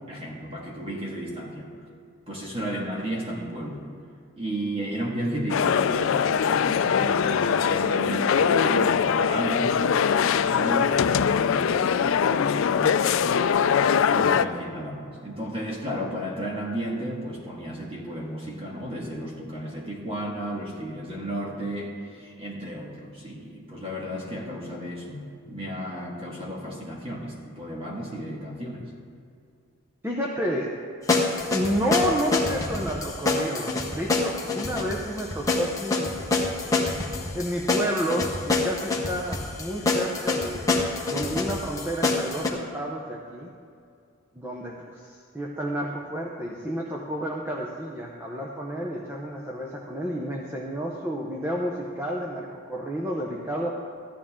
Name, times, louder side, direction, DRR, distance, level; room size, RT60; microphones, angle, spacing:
voice 1, 0.1-1.7 2.3-3.8 4.4-13.4 14.1-28.8, equal, 25° right, -2 dB, 2.0 m, -33 dB
sound 1, 5.5-14.4, left 7 dB, 65° left, 0.4 m, -22 dB
voice 2, 30.0-30.7 31.5-36.2 37.3-43.5 44.3-53.7, equal, 10° right, -2 dB, 0.8 m, -30 dB
sound 2, 31.1-42.5, left 3 dB, 15° left, 1.1 m, -26 dB
14.5 x 11.5 x 3.7 m, 2.4 s
head